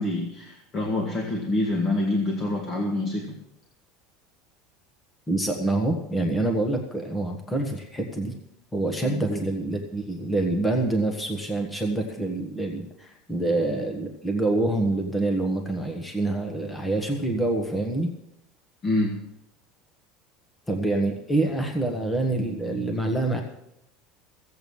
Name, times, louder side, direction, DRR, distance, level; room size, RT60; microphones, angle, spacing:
voice 1, 0.0-3.4 9.0-9.4 18.8-19.2, left 2 dB, 30° left, 1 dB, 1.8 m, -26 dB
voice 2, 5.3-8.3 8.7-18.1 20.7-23.4, right 2 dB, 10° left, 3 dB, 1.2 m, -26 dB
16.0 x 8.0 x 7.1 m, 0.80 s
cardioid pair, 165°, 0 cm